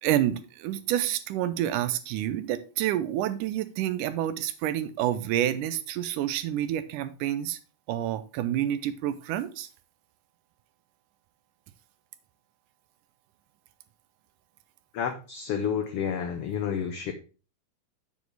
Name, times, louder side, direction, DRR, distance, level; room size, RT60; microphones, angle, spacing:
voice 1, 0.0-7.6 7.9-9.7, right 12 dB, 85° right, 12 dB, 2.3 m, -28 dB
voice 2, 14.9-17.1, left 7 dB, 70° left, 6 dB, 1.4 m, -30 dB
8.3 x 7.2 x 3.3 m, 0.33 s
omnidirectional pair, 3.6 m